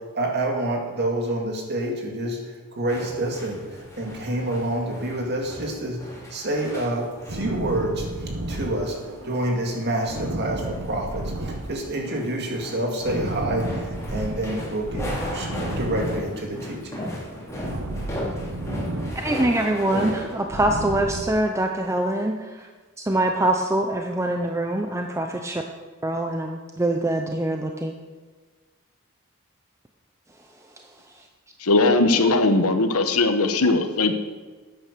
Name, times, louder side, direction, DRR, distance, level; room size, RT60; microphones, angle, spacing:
voice 1, 0.0-17.0, right 1 dB, 50° right, 1 dB, 2.3 m, -28 dB
sound 1, 2.9-20.3, equal, 15° left, 3.3 m, -36 dB
sound 2, 7.3-9.4 9.7-12.2 12.5-14.4 14.8-16.8 17.0-19.6 19.9-21.2, right 1 dB, 70° right, 1.3 m, -33 dB
voice 2, 19.1-22.7 23.0-25.6 26.0-27.9 31.2-31.3, right 1 dB, 15° right, 3 dB, 0.7 m, -24 dB
voice 3, 31.6-34.1, left 2 dB, 85° left, 8 dB, 1.1 m, -19 dB
10.0 x 9.2 x 6.7 m, 1.4 s
head